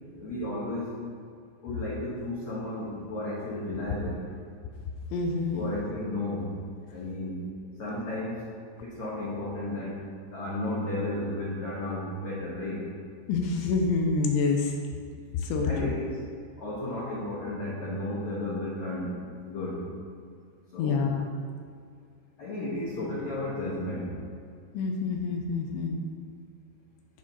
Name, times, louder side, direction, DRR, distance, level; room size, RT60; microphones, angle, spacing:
voice 1, 0.2-1.0 1.6-4.3 5.6-6.5 6.9-7.5 7.8-8.5 8.8-10.0 10.3-12.9 15.6-16.2 16.6-19.2 19.4-19.9 20.7-21.1 22.4-24.1, left 1 dB, 55° left, -8 dB, 2.2 m, -33 dB
voice 2, 5.1-5.8 13.3-14.8 15.3-15.9 20.8-21.3 24.7-26.0, left 4 dB, 80° left, 3 dB, 3.0 m, -27 dB
14.0 x 5.0 x 5.6 m, 2.2 s
omnidirectional pair, 5.7 m